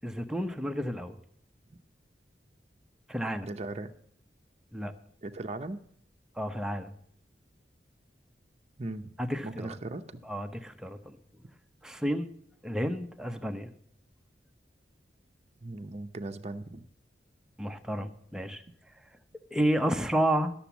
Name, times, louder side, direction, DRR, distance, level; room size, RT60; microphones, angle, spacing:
voice 1, 0.0-1.2 3.1-3.5 4.7-4.9 6.4-6.9 9.2-9.7 10.2-11.2 11.8-12.3 12.6-13.7 17.6-18.6 19.5-20.5, right 1 dB, 5° right, 6 dB, 0.7 m, -31 dB
voice 2, 3.4-3.9 5.2-5.8 8.8-9.1 9.4-10.2 15.6-16.9, right 2 dB, 35° right, 6 dB, 0.7 m, -38 dB
12.0 x 6.9 x 7.1 m, 0.66 s
head